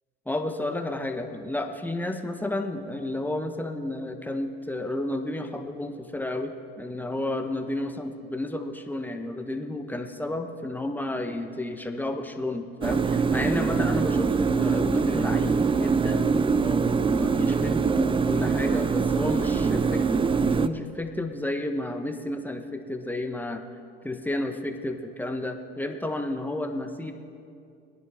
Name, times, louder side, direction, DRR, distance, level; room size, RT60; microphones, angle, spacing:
voice 1, 0.3-23.6 24.0-27.1, left 1 dB, 5° left, 5 dB, 1.3 m, -31 dB
sound 1, 12.8-20.7, right 5 dB, 20° right, 0.5 m, -23 dB
21.5 x 10.5 x 3.8 m, 2.4 s
hypercardioid pair, 70°, 29 cm